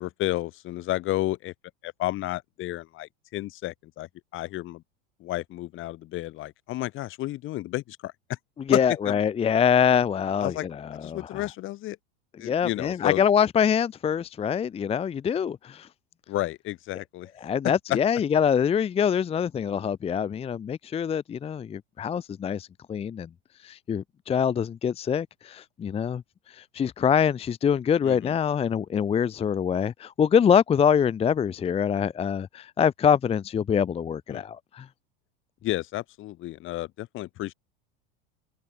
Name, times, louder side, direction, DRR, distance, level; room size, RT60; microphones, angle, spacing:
voice 1, 0.0-1.5 1.8-4.8 5.2-8.1 8.7-8.8 9.0-9.2 10.4-10.6 11.0-12.0 12.4-13.2 16.3-17.3 17.9-18.0 28.0-28.3 34.3-34.4 35.6-37.5, left 16 dB, 40° left, 1.1 m, -31 dB
voice 2, 8.7-11.5 12.4-15.9 17.4-23.3 23.6-26.2 26.5-34.9, left 7 dB, 20° left, 0.7 m, -24 dB
supercardioid pair, 120°, 31 cm